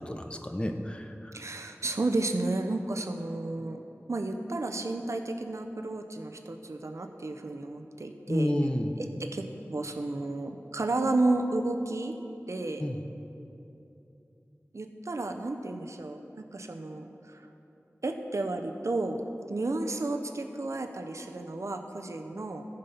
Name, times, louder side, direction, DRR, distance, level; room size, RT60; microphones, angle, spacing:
voice 1, 0.1-1.3 8.3-8.9 12.8-13.0, left 1 dB, 20° left, 5 dB, 0.8 m, -30 dB
voice 2, 1.3-3.8 4.1-8.5 9.0-12.1 12.5-12.8 14.7-17.4 18.0-19.2 19.5-22.6, right 2 dB, 70° right, 5 dB, 0.7 m, -32 dB
14.5 x 5.3 x 5.6 m, 2.9 s
wide cardioid pair, 50°, 5 cm